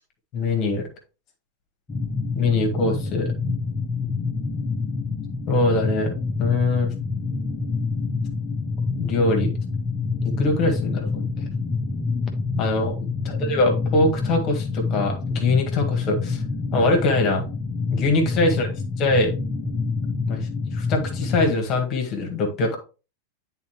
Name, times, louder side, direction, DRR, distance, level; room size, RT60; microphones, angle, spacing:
voice 1, 0.3-0.9 2.3-3.3 5.5-6.9 9.0-9.5 10.2-11.5 12.6-16.4 16.7-17.4 17.9-18.7 19.0-19.3 20.3-22.8, left 2 dB, 35° left, 3 dB, 1.7 m, -23 dB
sound 1, 1.9-21.5, left 4 dB, 20° left, 1.2 m, -27 dB
10.5 x 4.0 x 3.0 m, 0.32 s
figure-of-eight pair, 90°, 0 cm